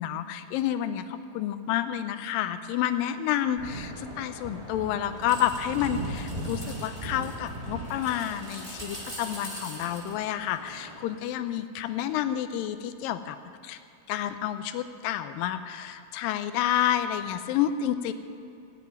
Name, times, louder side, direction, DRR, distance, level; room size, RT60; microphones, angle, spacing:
voice 1, 0.0-13.4 13.6-13.8 14.1-18.1, left 11 dB, 85° left, 10 dB, 2.4 m, -29 dB
sound 1, 3.6-11.0, right 1 dB, 10° right, 1.9 m, -38 dB
15.0 x 8.2 x 9.4 m, 2.5 s
omnidirectional pair, 4.0 m